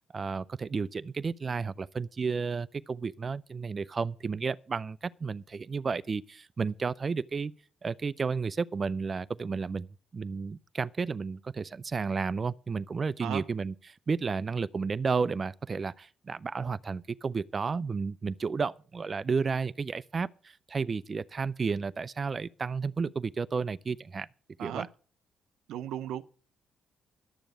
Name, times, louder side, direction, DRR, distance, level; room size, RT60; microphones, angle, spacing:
voice 1, 0.1-7.5 7.8-9.9 10.1-24.3 24.6-24.9, right 5 dB, 35° right, 0.5 m, -32 dB
voice 2, 25.7-26.2, right 11 dB, 85° right, 0.6 m, -35 dB
11.5 x 7.0 x 7.8 m
cardioid pair, 90°, 0 cm